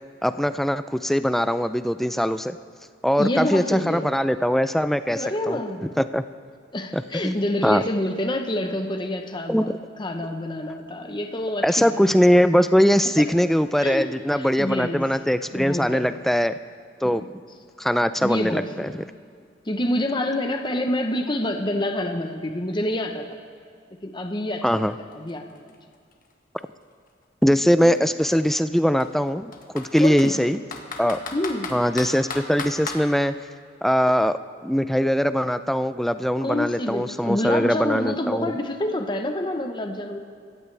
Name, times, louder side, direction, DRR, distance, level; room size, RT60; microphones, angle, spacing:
voice 1, 0.2-2.6 3.0-5.6 6.0-6.2 6.9-7.4 7.6-7.8 9.5-9.6 11.6-16.6 17.0-17.2 17.8-18.9 24.6-24.9 27.4-30.6 31.0-31.2 31.7-33.3 33.8-38.5, equal, ahead, 11 dB, 0.4 m, -21 dB
voice 2, 3.2-4.1 5.1-5.8 6.7-9.7 10.0-12.0 13.2-13.3 13.8-15.1 15.5-16.1 17.0-17.3 18.2-19.0 19.6-23.3 24.0-25.6 27.9-28.0 30.0-30.4 31.3-31.7 36.4-40.2, left 1 dB, 25° left, 5 dB, 0.9 m, -27 dB
Computer keyboard, 24.7-24.8 25.1-27.1 27.9-28.0 28.3-28.4 29.0-30.3 30.7-33.0, left 4 dB, 45° left, 1.5 m, -35 dB
26.0 x 15.0 x 3.4 m, 2.2 s
head